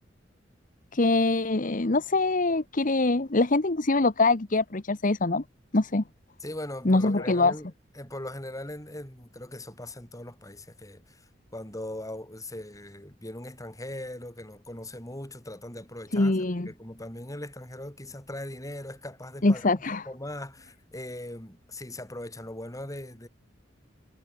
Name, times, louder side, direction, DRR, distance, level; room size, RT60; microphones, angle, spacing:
voice 1, 0.9-5.4 5.7-6.0 6.8-7.5 16.1-16.7 19.4-20.1, left 2 dB, 45° left, 1.1 m, -24 dB
voice 2, 6.4-7.7 7.9-11.2 11.5-23.3, left 1 dB, 20° left, 6.7 m, -40 dB
head